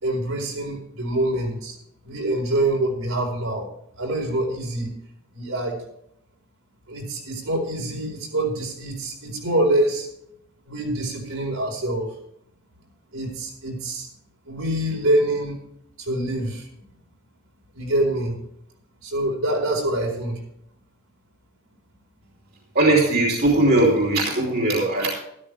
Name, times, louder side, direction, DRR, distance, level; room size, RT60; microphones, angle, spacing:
voice 1, 0.0-1.8 2.0-3.7 4.0-4.9 5.3-5.8 6.9-10.1 10.6-12.1 13.1-14.1 14.5-15.6 16.0-16.7 17.7-18.4 19.0-20.4, right 1 dB, 70° right, 0 dB, 4.4 m, -25 dB
voice 2, 22.7-25.1, right 2 dB, 45° right, -2 dB, 2.9 m, -19 dB
13.0 x 12.5 x 3.4 m, 0.74 s
head